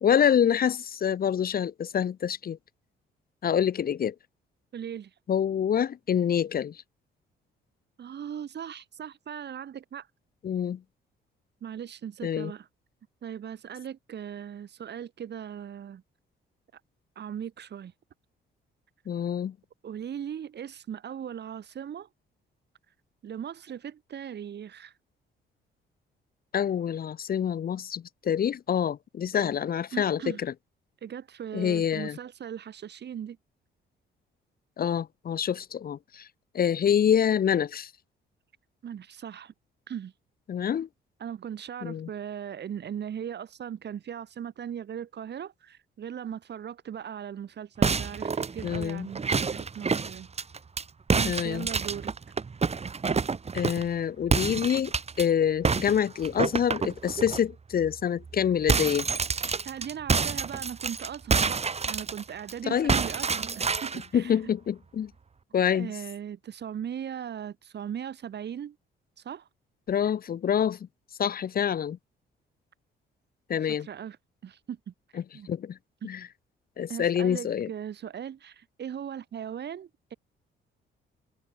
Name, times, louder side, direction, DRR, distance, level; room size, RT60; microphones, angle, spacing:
voice 1, 0.0-2.6 3.4-4.1 5.3-6.8 10.4-10.8 12.2-12.5 19.1-19.5 26.5-30.5 31.5-32.2 34.8-36.3 36.5-37.9 40.5-40.9 41.8-42.1 48.6-49.1 51.2-51.7 53.5-54.9 55.2-59.1 62.7-63.0 64.1-65.1 65.5-65.9 69.9-70.8 71.2-72.0 73.5-73.9 75.5-75.8 76.0-76.2 76.8-77.7, left 8 dB, 50° left, 0.9 m, -26 dB
voice 2, 4.7-5.1 8.0-10.1 11.6-12.7 13.2-16.0 17.1-17.9 19.8-22.1 23.2-24.9 29.4-29.5 29.9-30.4 31.0-33.4 38.8-39.5 39.9-40.1 41.2-50.3 51.1-52.1 59.6-64.5 65.7-68.8 69.2-69.5 73.6-74.2 74.4-74.9 75.3-75.5 76.0-76.1 76.9-80.1, right 9 dB, 60° right, 4.7 m, -38 dB
sound 1, 47.8-50.8 51.1-53.9 54.3-55.2 55.6-57.4 57.8-58.0 58.2-62.5 62.9-64.1, right 5 dB, 30° right, 2.1 m, -28 dB
cardioid pair, 90°, 20 cm